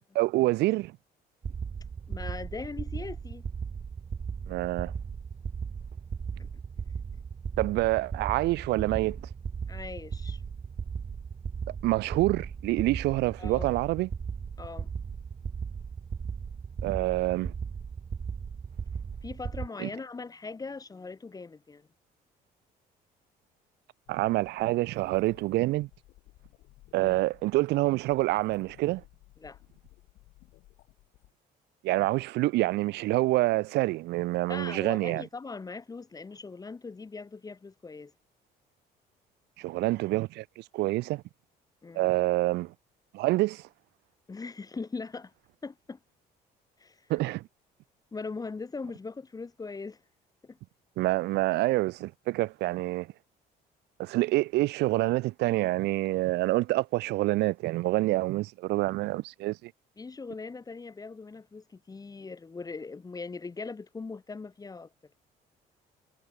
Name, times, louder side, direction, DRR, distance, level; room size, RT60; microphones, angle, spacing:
voice 1, 0.1-1.0 4.5-4.9 7.6-9.3 11.7-14.1 16.8-17.5 19.8-19.9 24.1-25.9 26.9-29.0 31.8-35.2 39.6-41.2 41.9-42.7 43.1-43.6 47.1-47.4 51.0-53.1 54.0-59.7, right 19 dB, 80° right, 0.9 m, -27 dB
sound 1, 1.4-19.7, right 6 dB, 30° right, 1.1 m, -37 dB
voice 2, 2.1-3.5 6.4-6.5 9.7-10.4 13.4-13.7 14.6-14.9 19.2-21.9 27.0-27.2 29.4-29.6 34.5-38.1 41.8-42.1 44.3-45.3 45.6-46.0 46.8-47.0 48.1-50.0 50.4-50.6 60.0-64.9, left 4 dB, 20° left, 1.7 m, -40 dB
sound 2, 24.1-31.3, left 18 dB, 85° left, 4.6 m, -58 dB
cardioid pair, 110°, 17 cm